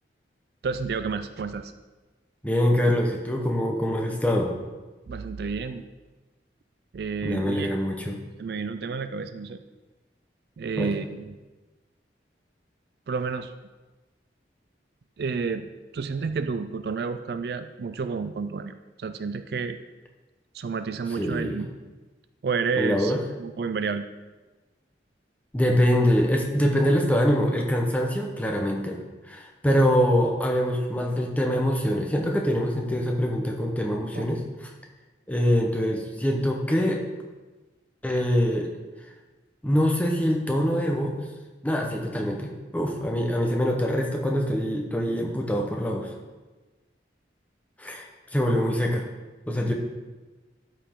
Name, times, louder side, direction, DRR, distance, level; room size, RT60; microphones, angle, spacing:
voice 1, 0.6-1.7 5.1-5.9 6.9-7.7 8.4-9.6 10.6-11.4 13.1-13.5 15.2-19.8 20.5-21.7 22.4-23.1 23.4-24.1 34.1-34.3, right 5 dB, 60° right, 10 dB, 0.4 m, -30 dB
voice 2, 2.4-4.5 7.2-8.2 10.8-10.9 21.2-21.7 22.8-23.2 25.5-29.0 29.3-34.7 35.3-37.0 38.0-38.7 39.6-41.2 41.6-46.1 47.8-48.0 48.3-49.0 49.5-49.7, equal, 10° left, 1 dB, 0.9 m, -24 dB
12.5 x 5.2 x 3.7 m, 1.2 s
head